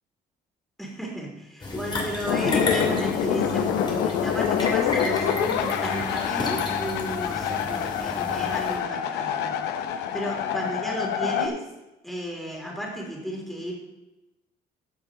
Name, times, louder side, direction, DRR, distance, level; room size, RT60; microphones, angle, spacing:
voice 1, 0.8-9.6 9.9-11.7 12.0-13.8, equal, ahead, -1 dB, 3.3 m, -33 dB
Empty sink, 1.6-8.8, left 2 dB, 25° left, 2.5 m, -32 dB
sound 1, 2.3-11.5, left 8 dB, 90° left, 0.8 m, -26 dB
13.5 x 7.1 x 3.9 m, 1.0 s
cardioid pair, 110°, 17 cm